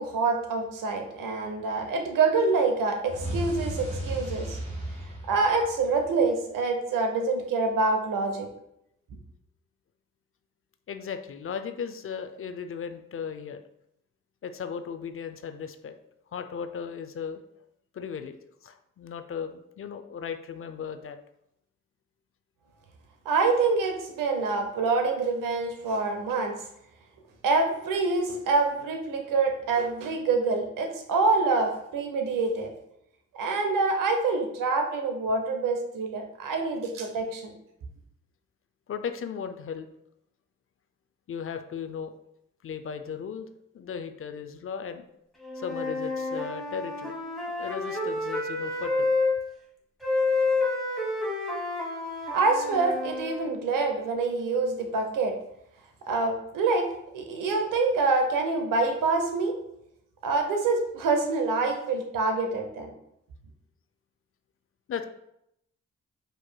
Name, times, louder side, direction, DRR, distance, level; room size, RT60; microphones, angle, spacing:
voice 1, 0.0-4.6 5.3-8.5 23.3-26.5 27.4-32.7 33.3-37.5 52.3-55.3 56.1-59.6 60.2-62.9, right 3 dB, 80° right, 4 dB, 0.7 m, -26 dB
sound 1, 3.1-6.2, right 1 dB, 25° right, 1.5 m, -34 dB
voice 2, 10.9-13.6 14.4-16.0 16.3-17.4 17.9-18.4 18.6-21.2 38.9-39.9 41.3-42.1 42.6-43.5 43.7-45.1 45.6-47.2 47.6-49.1 64.9-65.0, left 7 dB, 45° left, 9 dB, 0.4 m, -36 dB
Wind instrument woodwind instrument, 45.4-49.3 50.0-53.5, left 3 dB, ahead, 1.2 m, -29 dB
4.6 x 2.9 x 2.2 m, 0.79 s
supercardioid pair, 50°, 32 cm